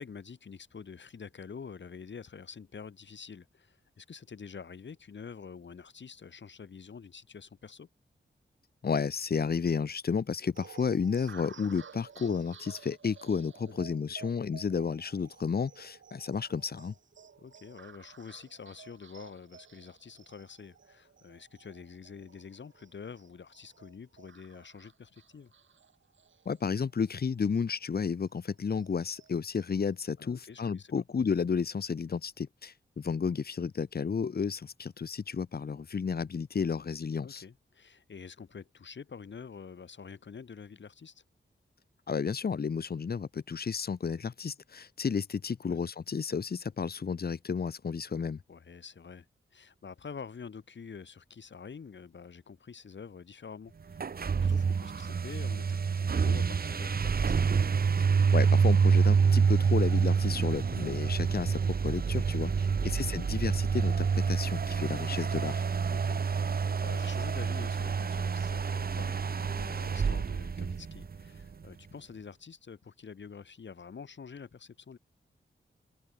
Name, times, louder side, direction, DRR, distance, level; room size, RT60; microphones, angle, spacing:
voice 1, 0.0-7.9 13.7-13.9 14.2-14.3 17.4-25.5 30.2-31.0 37.2-41.2 45.6-45.8 48.5-49.3 49.5-57.4 62.6-63.0 65.9-75.0, left 6 dB, 70° left, 7.8 m, -47 dB
voice 2, 8.8-16.9 26.4-37.4 42.1-48.4 58.0-58.1 58.3-65.6, left 6 dB, 55° left, 1.2 m, -32 dB
sound 1, 10.6-27.5 27.8-27.9 28.3-29.9, right 6 dB, 80° right, 6.3 m, -54 dB
sound 2, 53.9-71.4, right 6 dB, 50° right, 1.0 m, -27 dB
open air
cardioid pair, 75°, 19 cm